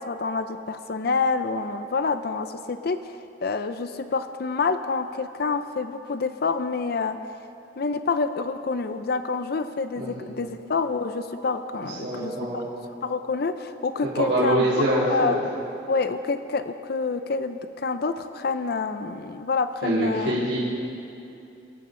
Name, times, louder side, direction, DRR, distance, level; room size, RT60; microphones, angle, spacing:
voice 1, 0.1-3.2 3.4-7.2 7.8-12.6 13.0-15.4 15.9-20.4, left 4 dB, 55° left, 10 dB, 0.5 m, -27 dB
voice 2, 10.0-10.3 12.0-12.7 14.2-15.3 19.8-20.6, right 1 dB, 70° right, -9 dB, 4.5 m, -24 dB
25.5 x 13.5 x 3.8 m, 2.8 s
head